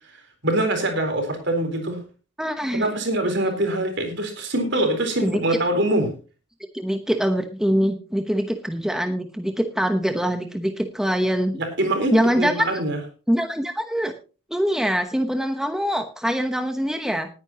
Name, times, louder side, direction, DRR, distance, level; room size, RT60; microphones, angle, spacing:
voice 1, 0.4-2.0 2.7-6.1 11.6-13.0, right 1 dB, 55° right, 5 dB, 3.9 m, -24 dB
voice 2, 2.4-2.9 5.2-5.4 6.7-11.6 12.1-12.7 13.3-14.1 14.5-17.3, equal, 5° right, 6 dB, 0.9 m, -23 dB
19.5 x 9.7 x 2.9 m, 0.34 s
head